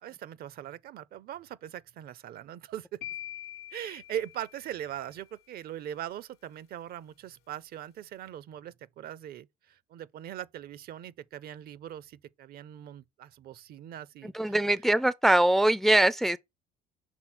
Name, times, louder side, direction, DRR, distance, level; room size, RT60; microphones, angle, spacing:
voice 1, 0.0-3.0 3.7-14.6, right 11 dB, 65° right, 0.6 m, -41 dB
sound 1, 3.0-5.1, left 13 dB, 75° left, 0.8 m, -44 dB
voice 2, 14.2-16.4, right 1 dB, ahead, 0.4 m, -23 dB
6.1 x 3.6 x 6.0 m
cardioid pair, 110°, 17 cm